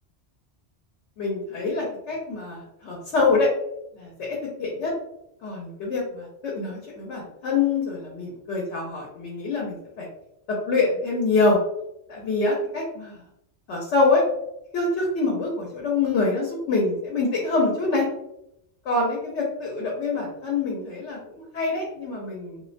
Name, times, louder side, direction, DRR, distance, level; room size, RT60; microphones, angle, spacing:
voice 1, 1.2-3.5 4.0-4.9 5.4-10.1 10.5-11.6 12.1-13.2 13.7-14.2 14.7-18.0 18.8-22.6, left 3 dB, 80° left, -2 dB, 0.9 m, -25 dB
2.4 x 2.1 x 2.4 m, 0.82 s
omnidirectional pair, 1.2 m